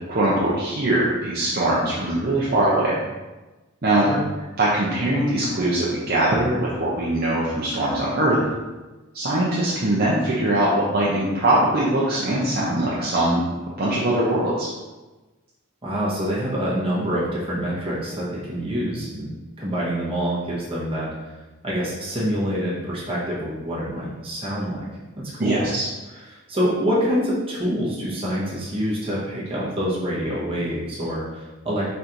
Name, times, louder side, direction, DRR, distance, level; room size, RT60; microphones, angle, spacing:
voice 1, 0.1-3.0 3.8-4.1 4.6-8.4 9.1-13.4 13.8-14.7 25.4-25.9, right 1 dB, 45° right, -7 dB, 0.7 m, -21 dB
voice 2, 15.8-19.3 19.6-21.1 21.6-24.9 25.3-25.7 26.1-31.9, equal, 25° right, -7 dB, 1.2 m, -26 dB
4.5 x 4.2 x 2.6 m, 1.2 s
head